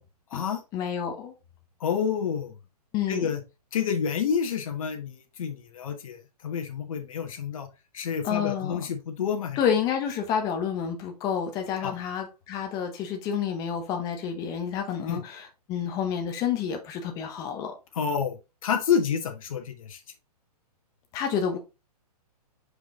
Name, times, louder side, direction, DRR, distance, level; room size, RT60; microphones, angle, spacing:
voice 1, 0.7-1.3 2.9-3.3 8.2-8.8 9.6-17.7 21.1-21.6, left 8 dB, 15° left, 1.0 m, -29 dB
voice 2, 1.8-2.5 3.1-3.4 3.7-7.7 7.9-9.6 11.8-11.9 15.1-15.2 17.9-20.0, left 7 dB, 55° left, 1.4 m, -29 dB
5.2 x 5.0 x 3.7 m
hypercardioid pair, 165°, 20 cm